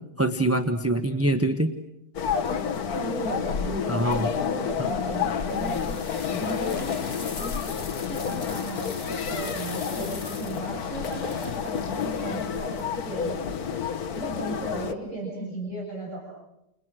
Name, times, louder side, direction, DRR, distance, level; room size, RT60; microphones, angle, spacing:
voice 1, 0.2-1.7 3.9-4.3 4.8-4.9, right 1 dB, 10° right, 7 dB, 0.9 m, -24 dB
sound 1, 2.1-14.9, left 7 dB, 55° left, 1.6 m, -30 dB
voice 2, 2.9-4.0 4.4-6.0 6.3-6.9 7.8-13.4 14.1-16.2, right 2 dB, 40° right, -3 dB, 7.5 m, -36 dB
sound 2, 5.5-11.6, left 3 dB, 35° left, 2.0 m, -41 dB
29.5 x 29.5 x 6.3 m, 0.88 s
omnidirectional pair, 2.0 m